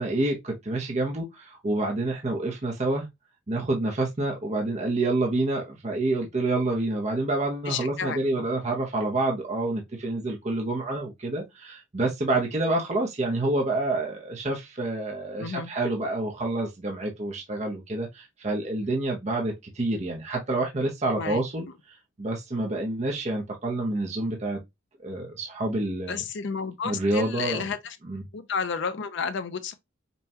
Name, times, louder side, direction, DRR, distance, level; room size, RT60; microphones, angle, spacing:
voice 1, 0.0-3.1 3.5-21.7 22.2-24.6 25.0-26.2 26.8-27.7 28.0-28.2, right 2 dB, 30° right, 0.7 m, -28 dB
voice 2, 7.7-8.5 15.4-15.7 21.2-21.4 26.1-28.0 28.3-29.7, left 6 dB, 55° left, 0.5 m, -31 dB
5.3 x 2.2 x 2.7 m
head